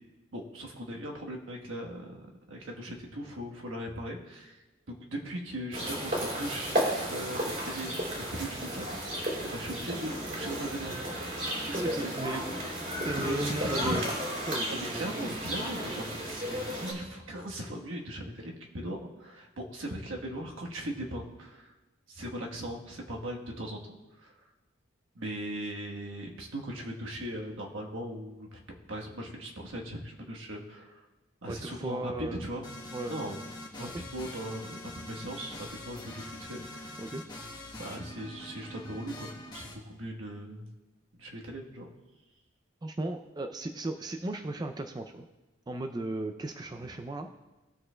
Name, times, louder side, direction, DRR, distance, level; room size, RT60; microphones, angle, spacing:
voice 1, 0.3-6.8 7.1-11.1 11.6-14.3 14.7-21.7 22.1-23.8 24.2-24.3 25.1-31.0 31.4-32.7 33.1-33.4 33.7-37.0 37.8-40.7 41.2-41.9, right 1 dB, 75° right, 0 dB, 1.2 m, -39 dB
sound 1, 5.7-16.9, right 1 dB, 45° right, 3.0 m, -33 dB
voice 2, 11.7-12.5 13.0-14.1 14.4-15.4 31.5-32.5 32.9-33.2 33.8-34.0 37.0-37.2 42.8-45.2 45.7-47.4, right 2 dB, 20° right, 6 dB, 0.3 m, -36 dB
sound 2, 32.6-39.7, left 1 dB, 20° left, 1.1 m, -44 dB
19.0 x 6.4 x 2.2 m, 1.1 s
head